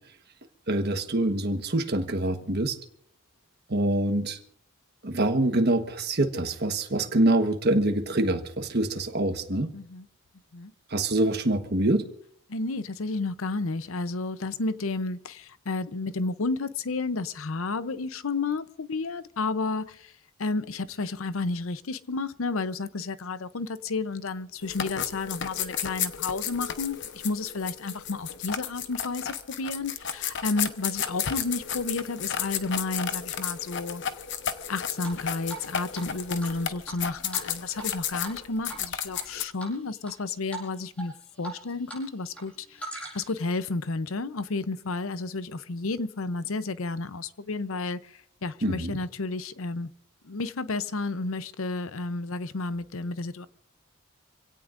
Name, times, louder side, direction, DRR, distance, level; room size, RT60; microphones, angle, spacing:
voice 1, 0.7-2.8 3.7-4.4 5.0-9.7 10.9-12.1 48.6-49.0, right 1 dB, 50° right, 1.3 m, -25 dB
voice 2, 9.7-10.0 10.5-10.7 12.5-20.1 20.4-34.0 34.7-42.8 43.1-48.1 48.4-49.9 50.2-53.5, left 3 dB, 75° left, 0.7 m, -31 dB
sound 1, 24.6-39.4, left 9 dB, 55° left, 1.0 m, -33 dB
Drip, 35.0-35.7 35.9-36.0 36.4-37.9 38.2-38.4 38.7-39.2 39.6-40.1 40.5-40.7 41.0-42.0 42.3-43.4, right 2 dB, 5° left, 6.1 m, -40 dB
26.5 x 17.0 x 2.6 m
head